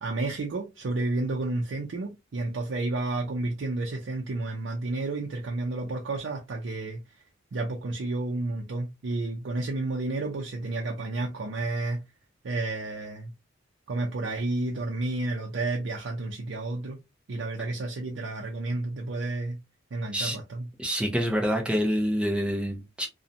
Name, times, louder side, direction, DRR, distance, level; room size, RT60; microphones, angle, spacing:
voice 1, 0.0-7.0 7.5-12.0 12.4-13.3 13.9-17.0 17.3-19.6 19.9-20.7, right 2 dB, 70° right, 0.5 m, -31 dB
voice 2, 20.8-23.1, equal, 5° right, 0.5 m, -27 dB
2.6 x 2.1 x 2.6 m
head